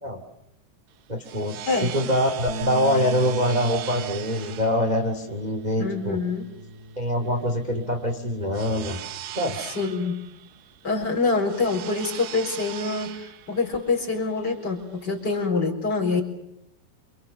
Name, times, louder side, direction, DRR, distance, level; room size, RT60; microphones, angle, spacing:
sound 1, 0.9-15.5, right 12 dB, 85° right, 3.7 m, -40 dB
voice 1, 1.1-6.2 6.9-9.0 9.3-9.6, equal, 15° right, 3 dB, 1.4 m, -24 dB
Bass guitar, 2.5-8.7, right 2 dB, 50° left, 5.5 m, -38 dB
voice 2, 5.8-6.5 9.7-10.2 10.8-16.2, left 4 dB, 25° left, 2 dB, 4.5 m, -25 dB
28.0 x 27.0 x 6.9 m, 0.81 s
omnidirectional pair, 5.0 m